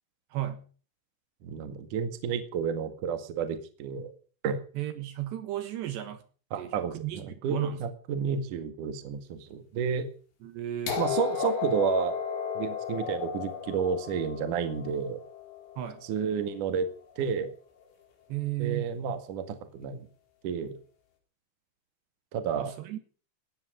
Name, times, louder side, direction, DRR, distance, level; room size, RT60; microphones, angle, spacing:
voice 1, 0.3-0.6 4.7-6.2 6.6-7.8 10.4-11.0 15.8-16.0 18.3-19.0 22.6-23.0, right 13 dB, 70° right, 10 dB, 3.3 m, -34 dB
voice 2, 1.4-4.1 4.4-4.6 6.5-10.1 11.0-12.2 12.5-15.2 16.1-16.9 17.2-17.5 18.6-20.0 20.4-20.8 22.3-22.7, right 7 dB, 55° right, 9 dB, 2.7 m, -31 dB
sound 1, 10.9-16.7 17.8-17.9, left 8 dB, 80° left, 6.6 m, -34 dB
18.5 x 14.0 x 5.0 m, 0.40 s
omnidirectional pair, 5.6 m